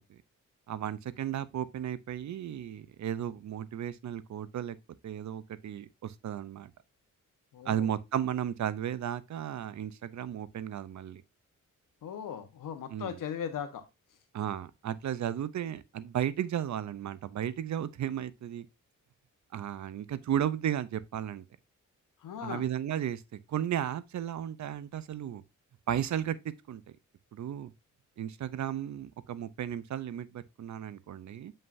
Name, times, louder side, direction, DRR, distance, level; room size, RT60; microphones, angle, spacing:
voice 1, 0.7-4.8 5.0-6.7 7.6-11.2 12.9-13.1 14.3-18.7 19.5-21.4 22.4-25.4 25.9-26.8 27.3-27.7 28.2-31.5, right 10 dB, 60° right, 0.7 m, -34 dB
voice 2, 7.5-7.9 12.0-13.8 22.2-22.6, left 8 dB, 85° left, 1.3 m, -38 dB
7.6 x 5.5 x 2.7 m
cardioid pair, 110°, 32 cm